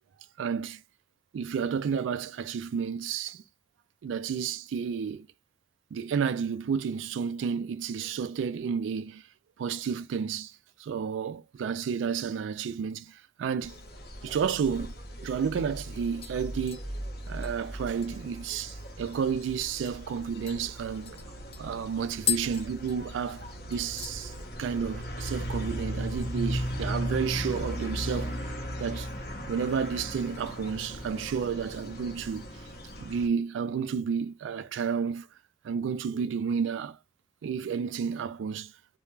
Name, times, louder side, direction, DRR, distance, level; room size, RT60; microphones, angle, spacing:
voice 1, 0.4-0.8 1.3-3.4 4.0-5.3 5.9-9.2 9.6-13.7 14.2-14.9 15.2-16.8 17.3-21.2 21.6-28.4 28.8-29.1 29.5-32.5 33.0-35.3 35.6-37.0 37.4-38.7, right 6 dB, 85° right, 0.3 m, -31 dB
sound 1, 13.6-33.3, equal, 50° left, 0.8 m, -37 dB
sound 2, 15.1-15.2 15.6-15.9 16.2-19.0 19.4-19.5 19.8-20.0 20.5-23.5 23.7-24.2 24.6-25.0 25.2-25.3 27.4-28.1 28.4-29.1 29.5-29.8 30.3-31.3 31.6-31.7, left 11 dB, 30° left, 0.3 m, -39 dB
2.4 x 2.2 x 3.0 m
head